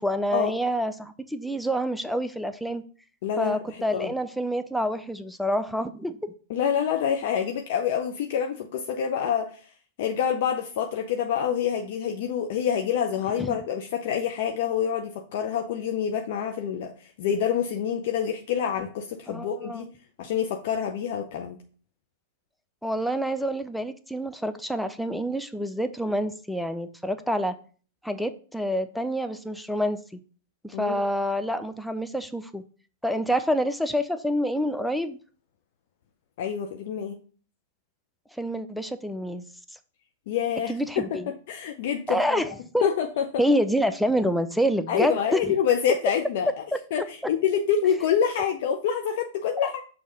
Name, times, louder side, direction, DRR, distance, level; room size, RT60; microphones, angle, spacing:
voice 1, 0.0-2.8 3.4-6.3 13.4-13.6 19.3-19.9 22.8-27.6 28.0-30.0 30.6-32.6 33.0-35.2 38.4-39.4 40.7-41.3 42.1-42.9 43.4-45.6 49.6-49.7, equal, ahead, 9 dB, 0.5 m, -27 dB
voice 2, 3.2-4.1 6.5-9.5 10.0-16.9 17.2-19.9 20.2-21.6 30.7-31.0 36.4-37.1 40.3-41.0 41.5-42.5 42.8-43.3 44.9-46.5 46.9-49.8, left 8 dB, 55° left, 4 dB, 0.6 m, -27 dB
6.3 x 2.9 x 5.2 m, 0.40 s
figure-of-eight pair, 100°, 0 cm